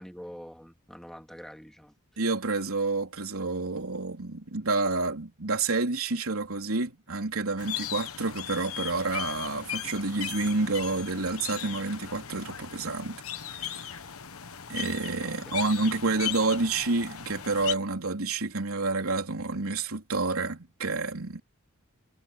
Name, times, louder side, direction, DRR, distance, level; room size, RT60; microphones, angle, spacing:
voice 1, 0.0-1.9 15.2-15.6, equal, ahead, 2.1 m, -45 dB
voice 2, 2.2-13.2 13.5-13.9 14.7-21.4, right 3 dB, 85° right, 3.4 m, -29 dB
sound 1, 7.6-17.7, left 10 dB, 85° left, 1.2 m, -38 dB
head